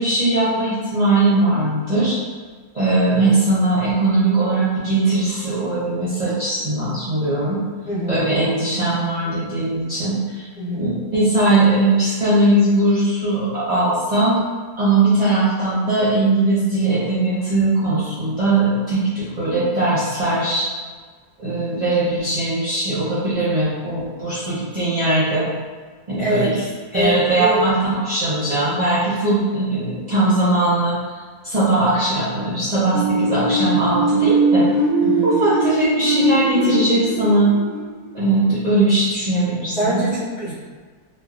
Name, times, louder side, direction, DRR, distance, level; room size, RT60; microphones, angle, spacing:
voice 1, 0.0-2.2 2.7-7.6 8.1-10.4 10.7-14.4 14.8-20.7 21.4-25.5 26.1-26.5 26.9-31.0 31.4-34.6 35.2-37.5 38.1-40.0, right 2 dB, 35° right, -12 dB, 0.7 m, -19 dB
voice 2, 26.2-26.7 26.9-27.6 35.0-35.3 39.7-40.5, right 1 dB, 80° left, -9 dB, 1.6 m, -23 dB
sound 1, 32.9-38.6, right 2 dB, 80° right, 0.4 m, -20 dB
2.9 x 2.8 x 2.4 m, 1.5 s
omnidirectional pair, 1.6 m